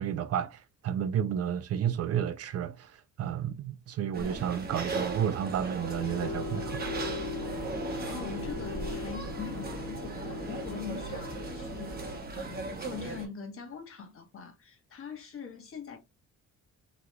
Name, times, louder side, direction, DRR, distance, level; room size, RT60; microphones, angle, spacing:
voice 1, 0.0-6.8, right 9 dB, 55° right, 0.4 m, -31 dB
sound 1, 4.1-13.3, right 3 dB, 30° right, 0.9 m, -38 dB
sound 2, 5.8-12.2, left 3 dB, 65° left, 0.8 m, -38 dB
voice 2, 8.1-16.0, left 6 dB, 45° left, 1.1 m, -43 dB
3.0 x 2.3 x 2.9 m
cardioid pair, 90°, 30 cm